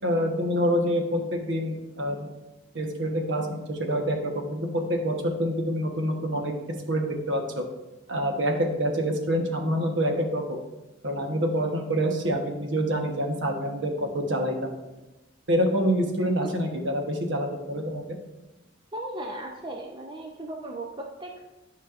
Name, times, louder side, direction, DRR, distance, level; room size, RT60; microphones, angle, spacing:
voice 1, 0.0-2.3 2.7-6.5 6.9-7.6 8.1-10.4 11.0-14.8 15.5-18.2, equal, 65° right, 3 dB, 1.0 m, -26 dB
voice 2, 18.9-21.4, right 1 dB, 25° right, 1 dB, 0.5 m, -36 dB
10.5 x 5.4 x 2.5 m, 1.0 s
head